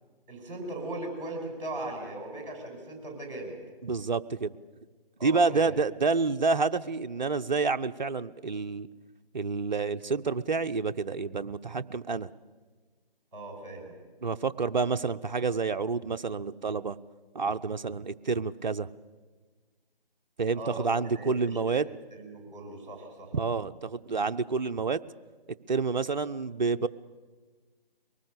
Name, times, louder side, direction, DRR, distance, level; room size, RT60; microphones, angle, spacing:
voice 1, 0.3-3.6 5.2-5.7 13.3-14.0 20.5-21.8 22.1-23.3, right 1 dB, 35° right, 1 dB, 5.9 m, -39 dB
voice 2, 3.8-4.5 5.2-8.9 9.3-12.3 14.2-17.0 17.3-18.9 20.4-21.9 23.3-25.0 25.7-26.9, right 4 dB, 50° right, 9 dB, 0.6 m, -28 dB
23.0 x 19.5 x 6.7 m, 1.4 s
figure-of-eight pair, 150°, 29 cm